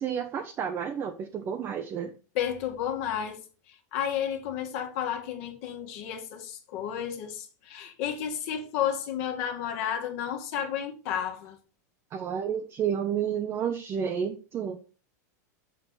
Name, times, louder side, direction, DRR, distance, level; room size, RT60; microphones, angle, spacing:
voice 1, 0.0-2.1 12.1-14.8, right 8 dB, 25° right, 0.6 m, -31 dB
voice 2, 2.3-3.4 3.7-11.6, left 9 dB, 50° left, 1.6 m, -32 dB
6.8 x 6.2 x 4.0 m
supercardioid pair, 150°, 10 cm